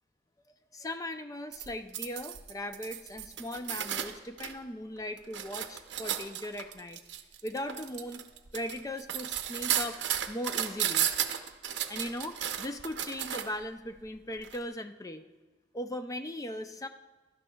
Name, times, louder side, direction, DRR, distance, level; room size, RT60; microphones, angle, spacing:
voice 1, 0.7-7.0 7.4-8.2 8.5-10.0 10.3-11.1 11.9-15.3 15.7-16.9, left 1 dB, 20° left, 8 dB, 0.4 m, -38 dB
sound 1, 1.5-4.5 5.0-13.6 14.4-14.6, right 10 dB, 70° right, 0.6 m, -34 dB
16.5 x 12.0 x 2.3 m, 1.2 s
head